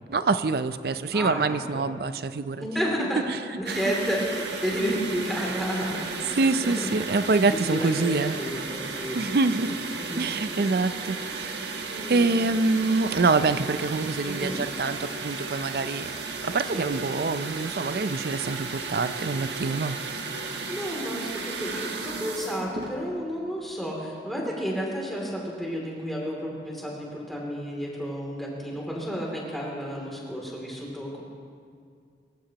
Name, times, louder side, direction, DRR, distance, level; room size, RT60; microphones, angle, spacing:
voice 1, 0.1-2.7 3.3-3.4 3.7-3.8 6.3-8.3 9.1-9.8 10.1-11.8 12.1-16.2 16.4-20.0, right 3 dB, 60° right, 12 dB, 0.5 m, -25 dB
voice 2, 1.1-1.8 2.6-3.2 3.6-7.0 7.5-9.2 10.0-10.2 11.8-12.3 14.3-14.6 16.7-16.9 20.7-31.2, equal, ahead, -3 dB, 2.8 m, -31 dB
sound 1, 3.7-23.0, right 4 dB, 85° right, 1.3 m, -34 dB
25.0 x 15.0 x 3.0 m, 2.2 s
head